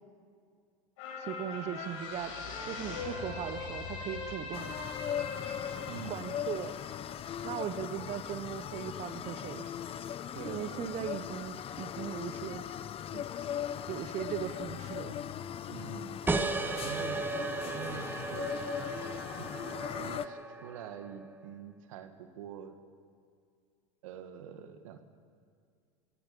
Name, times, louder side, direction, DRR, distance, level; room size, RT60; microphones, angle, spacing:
sound 1, 1.0-7.6 8.0-8.1, left 4 dB, 70° left, 5.6 m, -41 dB
voice 1, 1.2-4.8 6.1-6.7 7.4-9.7 10.5-12.6 13.1-13.2 13.9-15.2, right 10 dB, 40° right, 9 dB, 1.0 m, -39 dB
sound 2, 4.5-20.3, left 9 dB, 35° left, 0.8 m, -39 dB
voice 2, 5.9-6.2 10.3-10.9 15.7-16.2 16.8-17.2 17.6-18.5 19.3-22.8 24.0-25.0, right 9 dB, 80° right, 8 dB, 2.0 m, -45 dB
sound 3, 16.3-21.5, right 3 dB, 10° right, 1.3 m, -36 dB
28.0 x 16.5 x 7.0 m, 2.2 s
hypercardioid pair, 105°, 17 cm